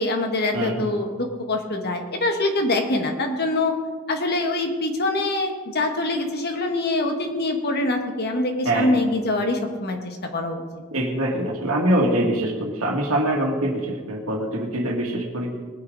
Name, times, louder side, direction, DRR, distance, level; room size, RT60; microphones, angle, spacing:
voice 1, 0.0-3.7 4.1-10.6, left 2 dB, 50° left, 4 dB, 1.6 m, -24 dB
voice 2, 0.5-0.9 8.6-9.0 10.9-15.5, right 1 dB, 75° right, 1 dB, 2.3 m, -24 dB
19.5 x 9.9 x 4.0 m, 1.5 s
head